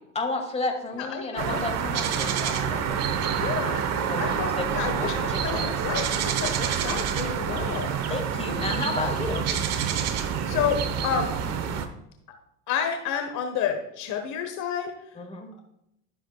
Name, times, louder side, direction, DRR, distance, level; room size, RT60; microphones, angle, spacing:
voice 1, 0.1-3.6 3.9-5.8 8.1-9.5 15.2-15.5, left 3 dB, 15° left, 3 dB, 2.2 m, -32 dB
voice 2, 1.0-1.6 3.4-3.8 4.2-5.1 5.4-7.9 9.5-9.6 10.4-11.4 12.7-15.1, left 7 dB, 55° left, 5 dB, 1.3 m, -30 dB
sound 1, 1.4-11.9, right 8 dB, 45° right, 1.1 m, -27 dB
12.5 x 7.3 x 2.3 m, 0.79 s
hypercardioid pair, 85°, 35 cm